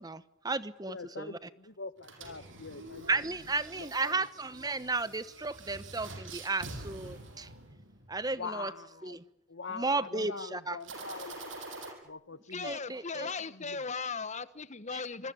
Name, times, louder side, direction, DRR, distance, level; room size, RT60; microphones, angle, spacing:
voice 1, 0.0-1.3 3.1-7.5 8.1-8.7 9.0-9.2 9.7-10.8 12.6-13.3, right 3 dB, 20° right, 1.1 m, -34 dB
voice 2, 0.9-3.3 3.7-4.3 8.3-9.2 9.5-11.5 12.0-12.7 13.2-13.9, left 4 dB, 80° left, 1.6 m, -44 dB
sound 1, 2.0-8.1 10.8-11.9, right 2 dB, 85° right, 7.9 m, -46 dB
voice 3, 12.5-15.3, left 4 dB, 40° left, 1.4 m, -37 dB
26.5 x 22.0 x 9.7 m
head